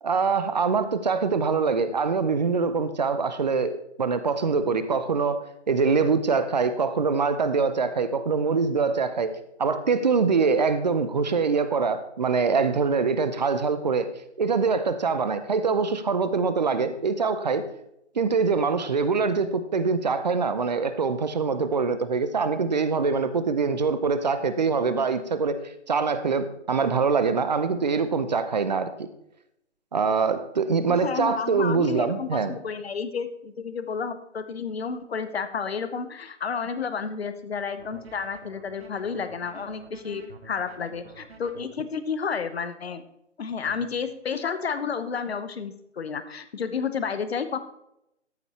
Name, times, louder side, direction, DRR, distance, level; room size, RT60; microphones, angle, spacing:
voice 1, 0.0-3.7 4.0-5.4 5.7-9.3 9.6-14.1 14.4-17.6 18.2-25.6 25.9-29.1 29.9-32.6, right 5 dB, 35° right, 12 dB, 0.7 m, -24 dB
voice 2, 30.9-43.0 43.4-47.6, left 6 dB, 55° left, 11 dB, 1.0 m, -31 dB
sound 1, 37.8-41.6 43.7-43.9, right 4 dB, 60° right, 1.3 m, -48 dB
13.5 x 5.4 x 4.3 m, 0.81 s
figure-of-eight pair, 145°, 36 cm